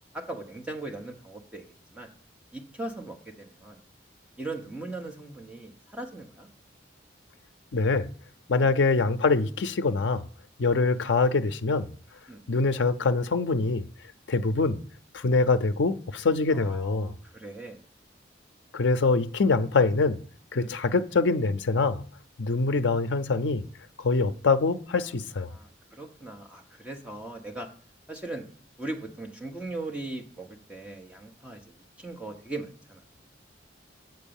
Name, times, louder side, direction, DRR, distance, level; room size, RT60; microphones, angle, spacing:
voice 1, 0.1-1.6 1.9-2.1 2.5-3.8 4.4-6.5 8.5-8.7 12.3-12.4 16.5-17.8 20.5-20.7 25.5-27.7 28.1-28.4 28.8-33.0, right 2 dB, 5° right, 1.1 m, -39 dB
voice 2, 7.7-8.1 8.5-10.3 10.6-11.9 12.5-13.9 14.3-14.8 15.1-17.1 18.7-20.2 20.5-22.0 22.4-23.7 24.0-25.5, left 3 dB, 75° left, 0.5 m, -24 dB
7.9 x 4.5 x 7.1 m
head